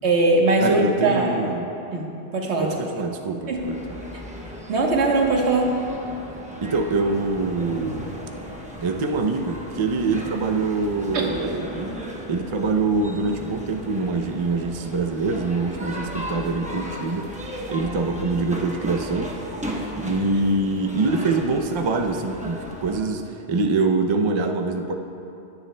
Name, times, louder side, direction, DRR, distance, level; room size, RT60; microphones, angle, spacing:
voice 1, 0.0-1.4 1.9-2.7 3.5-3.6 4.7-5.7 11.1-11.2, right 3 dB, 85° right, -1 dB, 1.5 m, -20 dB
voice 2, 0.6-1.7 2.6-4.0 6.6-8.2 8.8-12.0 12.3-19.4 20.0-24.9, right 3 dB, 40° right, 4 dB, 0.4 m, -25 dB
sound 1, 3.5-23.0, equal, 10° right, 0.8 m, -36 dB
17.0 x 9.6 x 2.2 m, 2.9 s
omnidirectional pair, 1.1 m